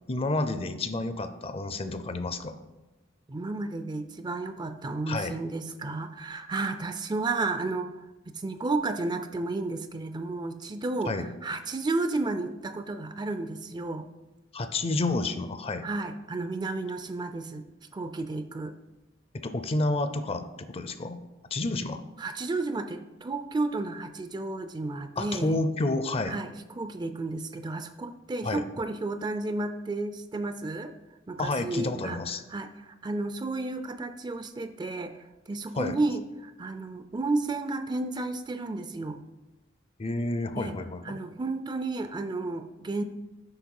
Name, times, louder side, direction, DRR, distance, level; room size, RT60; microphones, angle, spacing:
voice 1, 0.1-2.6 5.1-5.4 11.1-11.3 14.5-15.9 19.3-21.2 21.5-22.0 25.2-26.4 28.4-28.6 31.4-32.4 35.8-36.0 40.0-41.2, left 2 dB, 30° left, 11 dB, 0.5 m, -30 dB
voice 2, 3.3-7.9 8.3-14.1 15.8-17.6 17.9-18.7 22.2-25.6 26.3-30.9 31.3-32.2 32.5-35.1 35.5-39.2 40.6-40.7 41.0-43.0, right 2 dB, 25° right, 10 dB, 0.4 m, -32 dB
8.0 x 5.7 x 4.7 m, 1.1 s
head